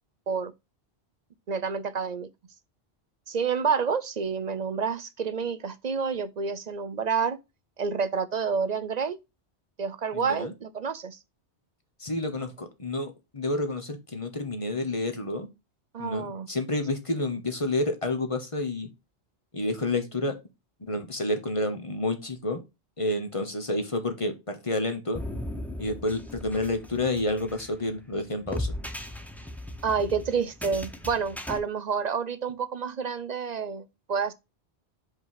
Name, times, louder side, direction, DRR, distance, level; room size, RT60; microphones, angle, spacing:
voice 1, 1.5-2.3 3.3-7.4 7.8-9.2 9.8-11.2 15.9-16.5 29.8-34.3, right 6 dB, 50° right, 0.6 m, -29 dB
voice 2, 10.1-10.5 12.0-15.5 16.0-18.9 19.5-20.3 20.9-22.6 23.0-25.2 25.8-28.7, left 2 dB, 30° left, 1.1 m, -29 dB
sound 1, 25.1-31.6, left 1 dB, ahead, 0.6 m, -37 dB
5.2 x 4.7 x 5.7 m
omnidirectional pair, 1.1 m